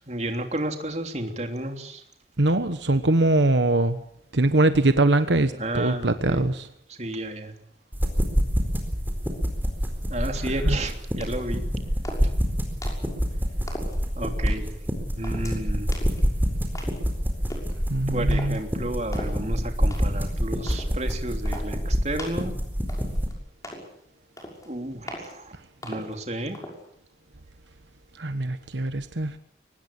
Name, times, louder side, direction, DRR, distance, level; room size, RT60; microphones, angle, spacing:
voice 1, 0.0-2.0 5.5-6.5 6.9-7.5 10.1-11.6 14.1-14.8 15.1-16.0 18.1-22.5 24.6-25.5 25.8-26.6, right 1 dB, 35° right, 5 dB, 3.2 m, -32 dB
voice 2, 2.4-4.0 4.3-6.7 10.6-10.8 17.9-18.6 28.2-29.3, right 2 dB, 75° right, 10 dB, 1.3 m, -22 dB
sound 1, 7.9-23.3, equal, 10° right, 4.3 m, -27 dB
sound 2, 11.2-11.6 12.0-12.4 12.8-13.1 13.7-14.0 14.5-14.7 15.2-15.6 15.9-16.2 16.7-17.1 17.5-17.7 18.3-18.6 19.1-19.4 19.9-20.3 20.7-20.9 21.4-21.7 22.2-22.5 22.9-23.3 23.6-23.9 24.4-24.7 25.1-25.3 25.8-26.2 26.5-26.8, equal, 20° left, 6.1 m, -39 dB
24.0 x 19.5 x 8.5 m, 0.69 s
head